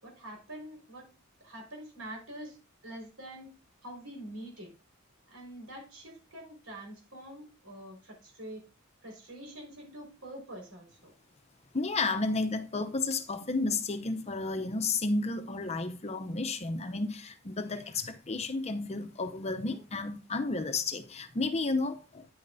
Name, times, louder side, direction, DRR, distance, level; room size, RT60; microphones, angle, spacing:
voice 1, 0.0-1.1 1.4-2.6 2.8-3.5 3.8-4.7 5.3-8.6 9.0-11.1, right 1 dB, 80° right, 4.8 m, -45 dB
voice 2, 11.7-22.3, left 3 dB, 30° left, 0.7 m, -32 dB
9.6 x 8.7 x 2.6 m
head